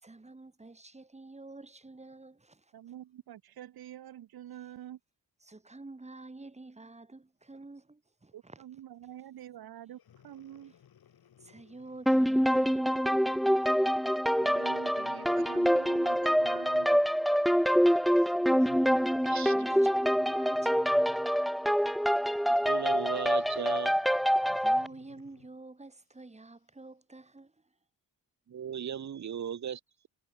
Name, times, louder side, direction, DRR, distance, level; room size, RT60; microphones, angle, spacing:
voice 1, 0.0-2.7 5.4-8.6 10.7-10.8 11.4-14.1 18.1-18.7 19.2-21.2 24.5-27.7, right 2 dB, 20° right, 3.9 m, -49 dB
voice 2, 2.7-5.0 8.3-10.7 14.4-17.0, right 11 dB, 90° right, 1.1 m, -46 dB
Breathing, 10.0-12.6 13.2-13.4 14.3-17.2 18.6-21.4 22.8-25.6 26.2-26.3, left 9 dB, 85° left, 4.5 m, -59 dB
sound 1, 12.1-24.9, equal, ahead, 0.5 m, -26 dB
voice 3, 19.2-19.5 22.5-24.0 28.5-30.1, right 8 dB, 50° right, 1.1 m, -37 dB
wide cardioid pair, 130°, 36 cm